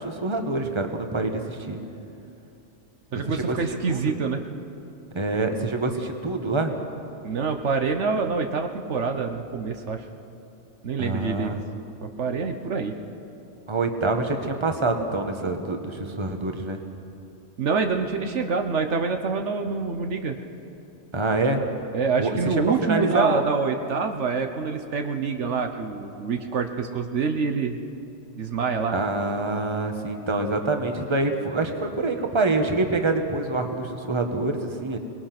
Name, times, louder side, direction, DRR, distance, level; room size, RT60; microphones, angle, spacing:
voice 1, 0.0-1.8 3.1-3.6 3.9-4.1 5.1-6.8 11.0-11.6 13.7-16.8 21.1-21.6 22.2-23.4 28.9-35.0, right 3 dB, 25° right, 5 dB, 1.4 m, -26 dB
voice 2, 3.1-4.4 7.2-10.0 10.8-11.6 12.0-12.9 17.6-20.4 21.9-27.8 28.4-29.0, right 5 dB, 70° right, 6 dB, 1.3 m, -26 dB
24.5 x 20.0 x 6.0 m, 2.7 s
omnidirectional pair, 1.3 m